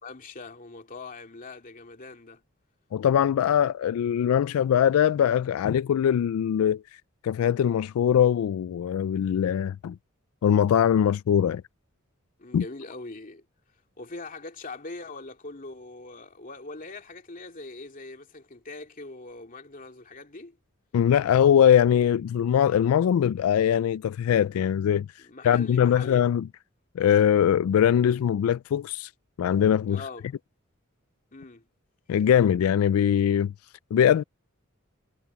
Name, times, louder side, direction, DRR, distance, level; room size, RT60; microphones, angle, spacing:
voice 1, 0.0-2.4 12.4-13.4 14.0-20.6 25.2-26.2 29.9-30.3 31.3-31.6, left 3 dB, 40° left, 2.6 m, -42 dB
voice 2, 2.9-6.8 7.2-10.0 10.4-11.6 12.5-12.6 20.9-25.1 25.4-26.5 27.0-29.1 29.4-30.0 32.1-33.5 33.9-34.2, left 9 dB, 90° left, 0.3 m, -22 dB
head